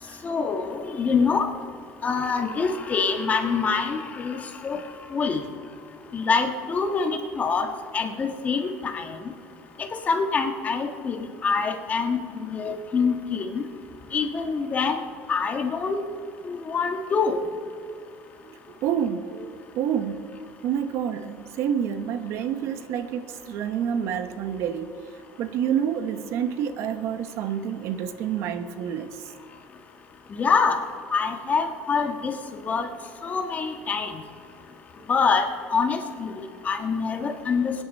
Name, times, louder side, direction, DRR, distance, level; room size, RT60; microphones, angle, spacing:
voice 1, 0.2-1.5 2.0-4.8 5.1-5.4 6.1-7.7 7.9-9.2 10.1-11.2 11.4-13.6 14.1-15.0 15.3-16.0 16.4-17.4 30.3-30.8 31.1-32.4 32.6-32.9 33.2-34.1 35.1-35.5 35.7-37.7, left 5 dB, 30° left, 5 dB, 1.5 m, -25 dB
voice 2, 18.8-20.3 20.6-24.9 25.4-29.1 37.2-37.3, right 8 dB, 60° right, 10 dB, 0.9 m, -28 dB
22.5 x 10.0 x 4.2 m, 2.3 s
cardioid pair, 120°, 5 cm